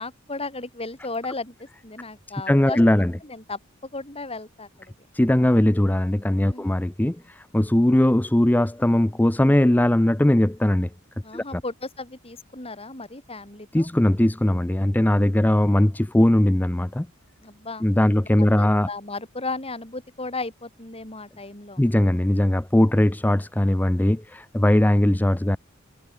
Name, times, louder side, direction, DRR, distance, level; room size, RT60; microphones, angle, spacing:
voice 1, 0.0-2.8 3.2-4.9 6.4-6.7 11.2-13.9 17.4-18.2 18.6-21.8, left 3 dB, 30° left, 4.7 m, -35 dB
voice 2, 2.5-3.1 5.1-10.9 11.3-11.6 13.7-17.1 17.8-18.9 21.8-25.6, left 1 dB, 10° left, 0.5 m, -20 dB
head